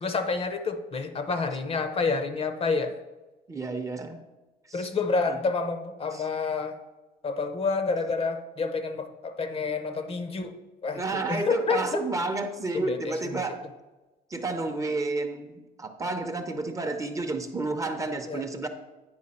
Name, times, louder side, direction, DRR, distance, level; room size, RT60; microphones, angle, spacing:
voice 1, 0.0-3.0 4.7-6.8 7.2-10.5 10.8-11.0 11.3-12.0 12.7-13.4 18.3-18.4, left 4 dB, 35° left, 8 dB, 0.7 m, -28 dB
voice 2, 3.5-4.2 4.7-4.9 5.3-5.4 6.1-6.3 10.9-13.6 14.3-18.7, right 3 dB, 20° right, 6 dB, 0.7 m, -31 dB
9.5 x 4.7 x 4.2 m, 1.1 s
cardioid pair, 110°, 17 cm